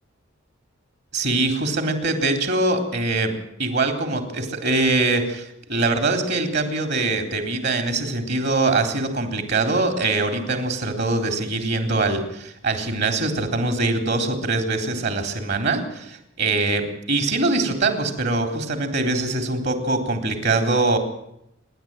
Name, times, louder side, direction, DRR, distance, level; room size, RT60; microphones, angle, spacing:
voice 1, 1.1-3.3 3.6-21.0, right 2 dB, 60° right, 7 dB, 4.0 m, -23 dB
27.5 x 11.0 x 9.1 m, 0.79 s
head